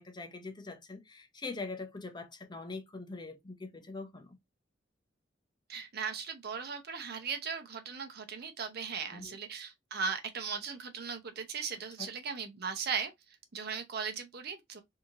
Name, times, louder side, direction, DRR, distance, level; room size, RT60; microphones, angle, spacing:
voice 1, 0.0-4.3 9.1-9.4 12.0-12.1, left 3 dB, 25° left, 0.6 m, -43 dB
voice 2, 5.7-13.1 13.5-14.8, right 6 dB, 55° right, 0.8 m, -38 dB
3.1 x 2.8 x 3.6 m
head